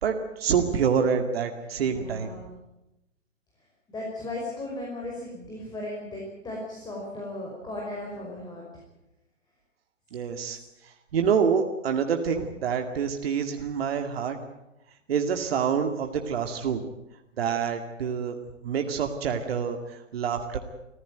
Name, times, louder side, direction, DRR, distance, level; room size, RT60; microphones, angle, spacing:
voice 1, 0.0-2.3 10.1-10.6 10.8-14.4 15.1-16.8 17.4-18.4 18.6-20.6, right 7 dB, 55° right, 5 dB, 2.2 m, -27 dB
voice 2, 1.8-2.6 3.9-8.6, left 2 dB, 10° left, -2 dB, 5.4 m, -36 dB
26.0 x 15.5 x 9.3 m, 0.94 s
figure-of-eight pair, 125°, 37 cm